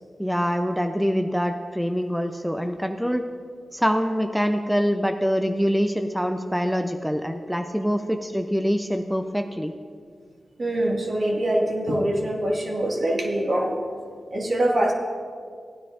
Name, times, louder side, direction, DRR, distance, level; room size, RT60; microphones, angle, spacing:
voice 1, 0.2-3.3 3.7-9.7, equal, ahead, 5 dB, 0.5 m, -25 dB
voice 2, 10.6-13.8 14.3-14.9, right 1 dB, 50° right, -1 dB, 1.8 m, -24 dB
16.5 x 9.6 x 2.5 m, 2.1 s
cardioid pair, 55°, 0 cm